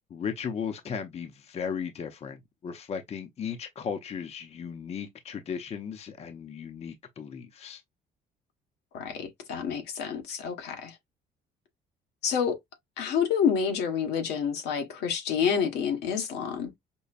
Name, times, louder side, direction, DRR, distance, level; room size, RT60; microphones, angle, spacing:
voice 1, 0.1-7.8, left 7 dB, 40° left, 0.7 m, -36 dB
voice 2, 8.9-11.0 12.2-12.6 13.0-16.7, left 7 dB, 80° left, 1.3 m, -28 dB
5.3 x 2.1 x 2.4 m
cardioid pair, 110°, 17 cm